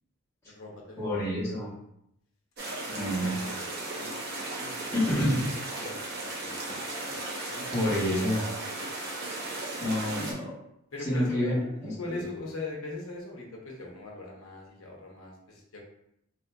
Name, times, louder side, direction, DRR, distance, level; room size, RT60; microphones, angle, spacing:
voice 1, 0.5-1.7 2.9-3.4 4.0-4.1 4.6-5.0 5.8-6.8 7.0-7.1 7.5-8.2 10.9-15.8, left 2 dB, 70° left, -1 dB, 0.8 m, -41 dB
voice 2, 1.0-1.8 2.9-3.3 4.9-5.4 7.7-8.4 9.8-10.6 11.0-11.6 11.8-12.2, equal, 10° left, -11 dB, 1.1 m, -28 dB
sound 1, 2.6-10.3, right 2 dB, 45° right, 0.7 m, -36 dB
4.2 x 2.6 x 2.2 m, 0.77 s
head